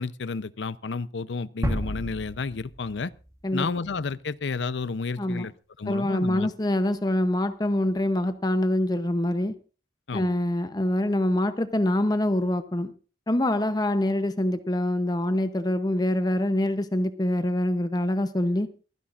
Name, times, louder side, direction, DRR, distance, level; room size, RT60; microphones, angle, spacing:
voice 1, 0.0-3.1 3.5-5.5 5.8-6.5 10.1-10.4, left 4 dB, 90° left, 0.6 m, -31 dB
sound 1, 1.6-3.5, equal, 20° right, 1.5 m, -32 dB
voice 2, 5.8-9.5 10.1-12.9 13.3-18.7, left 1 dB, 20° left, 0.7 m, -25 dB
27.5 x 10.0 x 2.5 m
head